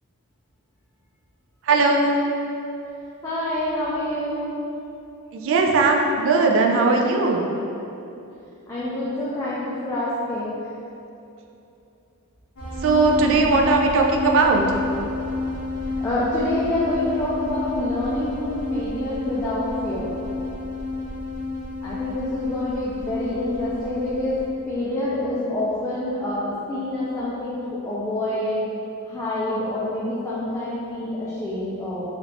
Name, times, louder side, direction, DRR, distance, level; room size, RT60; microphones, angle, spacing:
voice 1, 1.6-2.2 5.3-7.5 12.8-14.8, right 3 dB, 60° right, 1 dB, 0.3 m, -19 dB
voice 2, 3.2-4.5 8.7-10.5 16.0-20.2 21.8-24.4 24.7-28.6 29.1-32.0, left 1 dB, 15° left, -9 dB, 0.3 m, -27 dB
sound 1, 12.6-24.5, left 3 dB, 90° left, 1.0 m, -30 dB
3.4 x 2.4 x 3.0 m, 2.8 s
head